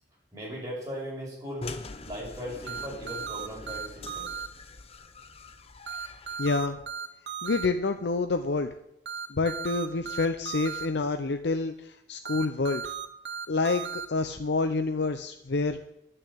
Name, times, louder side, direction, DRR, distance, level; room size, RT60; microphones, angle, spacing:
voice 1, 0.3-1.7 2.0-4.3, equal, 20° right, -5 dB, 5.8 m, -38 dB
sound 1, 1.6-6.7, left 3 dB, 35° left, 0.8 m, -44 dB
sound 2, 2.7-4.5 5.9-7.7 9.1-10.9 12.2-14.1, right 7 dB, 70° right, 0.9 m, -36 dB
voice 2, 6.4-6.8 7.4-8.7 9.3-12.9 13.5-15.8, left 3 dB, 70° left, 7 dB, 0.6 m, -28 dB
10.5 x 6.7 x 8.4 m, 0.81 s
head